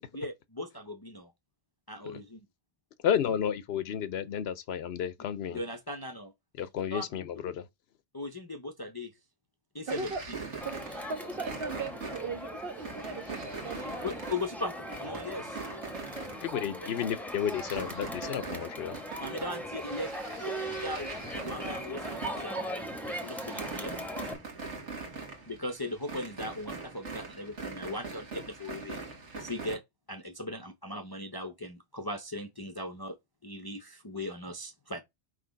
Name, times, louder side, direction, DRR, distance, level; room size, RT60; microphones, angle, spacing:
voice 1, 0.1-1.3 1.9-2.5 5.5-6.3 6.9-7.1 8.1-9.1 9.7-10.1 14.0-15.6 16.9-17.0 19.2-20.1 20.8-21.1 21.4-23.9 25.5-29.0 29.3-29.8 30.1-33.2 33.4-35.0, left 2 dB, 30° left, 0.5 m, -38 dB
voice 2, 3.0-5.6 6.6-7.7 16.4-19.0, left 8 dB, 70° left, 0.8 m, -32 dB
voice 3, 9.9-10.2 10.6-10.8 11.1-14.2 15.8-16.5, right 4 dB, 60° right, 1.1 m, -39 dB
sound 1, 9.9-16.8 17.2-29.8, right 4 dB, 80° right, 1.8 m, -42 dB
Crowd, 10.6-24.3, equal, ahead, 0.8 m, -39 dB
5.9 x 3.2 x 5.1 m
omnidirectional pair, 1.2 m